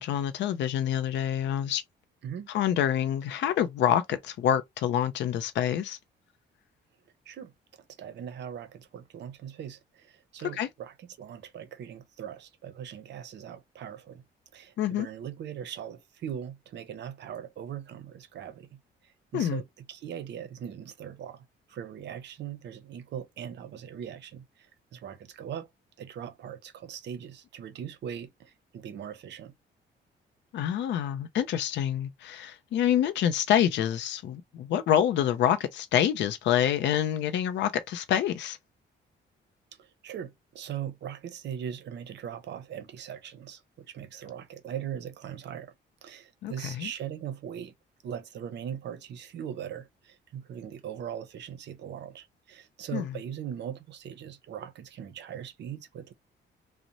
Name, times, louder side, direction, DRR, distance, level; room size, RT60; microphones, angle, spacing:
voice 1, 0.0-1.8 2.5-6.0 10.5-10.7 14.8-15.1 19.3-19.6 30.5-38.6 46.4-46.9 52.9-53.1, left 10 dB, 65° left, 0.4 m, -27 dB
voice 2, 8.0-14.2 14.5-18.8 19.3-21.4 21.7-24.5 24.9-25.7 26.0-29.5 39.8-45.7 46.0-47.7 48.0-56.1, right 9 dB, 60° right, 0.6 m, -40 dB
2.6 x 2.0 x 2.8 m
cardioid pair, 90°, 20 cm